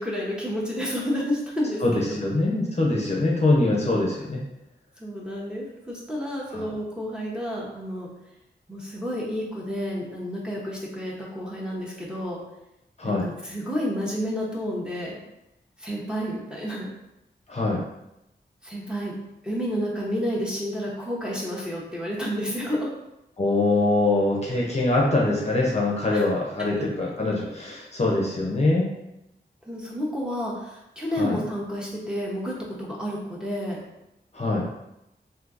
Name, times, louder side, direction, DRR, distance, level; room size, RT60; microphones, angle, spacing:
voice 1, 0.0-2.2 5.0-8.1 8.7-12.4 13.0-15.2 15.8-16.9 18.6-19.2 19.4-22.9 26.1-26.2 26.7-26.8 29.7-33.8, equal, 5° right, -5 dB, 0.9 m, -30 dB
voice 2, 1.8-4.4 6.5-6.6 13.0-13.3 17.5-17.8 23.4-28.9 31.2-31.4 34.3-34.7, left 2 dB, 35° left, -3 dB, 0.6 m, -23 dB
3.6 x 2.7 x 2.5 m, 0.89 s
wide cardioid pair, 70°, 18 cm